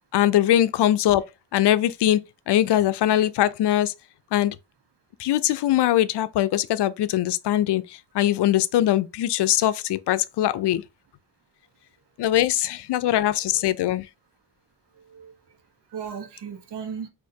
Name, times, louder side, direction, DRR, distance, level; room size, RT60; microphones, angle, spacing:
voice 1, 0.1-1.2 1.5-2.2 2.5-3.9 4.3-4.6 5.2-10.8 12.2-14.1, left 12 dB, 85° left, 0.5 m, -21 dB
voice 2, 14.9-15.6 15.9-17.1, right 7 dB, 80° right, 1.2 m, -37 dB
6.4 x 2.7 x 2.8 m
wide cardioid pair, 155°, 40 cm